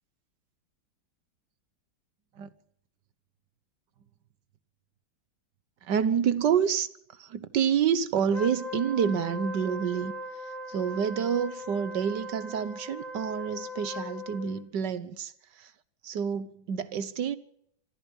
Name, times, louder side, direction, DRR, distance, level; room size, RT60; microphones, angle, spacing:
voice 1, 5.8-6.9 7.2-10.1 10.7-15.3 15.6-15.7 16.0-17.4, right 7 dB, 65° right, 1.7 m, -28 dB
Wind instrument woodwind instrument, 8.3-14.6, left 1 dB, 40° right, 4.0 m, -39 dB
25.0 x 14.5 x 7.4 m
omnidirectional pair, 2.1 m